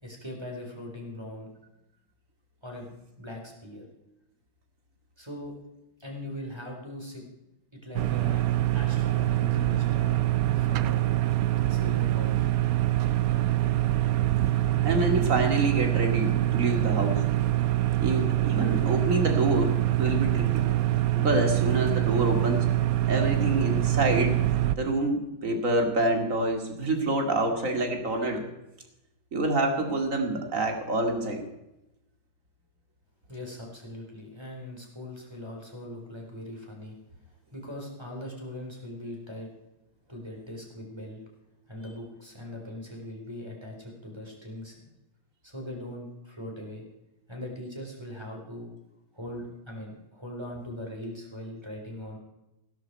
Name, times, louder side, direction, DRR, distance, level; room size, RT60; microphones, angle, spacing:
voice 1, 0.0-1.5 2.6-3.8 5.2-5.5 6.0-7.2 7.8-8.4 8.7-11.1 11.7-12.5 33.3-37.0 37.5-39.5 40.1-41.2 41.7-44.8 45.4-46.8 47.3-48.7 49.1-52.2, left 1 dB, 10° right, 0 dB, 4.0 m, -40 dB
sound 1, 7.9-24.8, right 14 dB, 75° right, 0.8 m, -25 dB
voice 2, 14.8-17.2 18.0-20.6 21.2-22.7 23.1-24.4 24.8-28.4 29.3-31.5, right 2 dB, 40° right, 4 dB, 2.7 m, -27 dB
16.0 x 13.0 x 4.7 m, 0.93 s
omnidirectional pair, 2.2 m